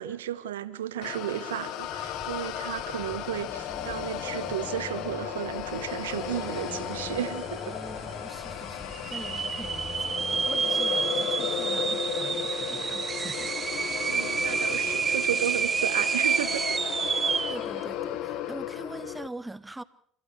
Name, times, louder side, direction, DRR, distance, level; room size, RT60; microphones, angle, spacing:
voice 1, 0.0-7.7 14.0-16.8, right 11 dB, 90° right, 1.3 m, -34 dB
sound 1, 1.0-19.3, left 10 dB, 65° left, 1.4 m, -35 dB
Accelerating revving vroom, 1.8-10.5, left 1 dB, 15° left, 7.7 m, -44 dB
sound 2, 6.7-6.8 7.0-7.6 8.1-8.2 8.9-17.6, right 6 dB, 35° right, 1.2 m, -29 dB
voice 2, 7.6-13.5 17.5-19.8, right 2 dB, 10° right, 1.0 m, -43 dB
29.5 x 15.0 x 6.4 m
hypercardioid pair, 70°, 0 cm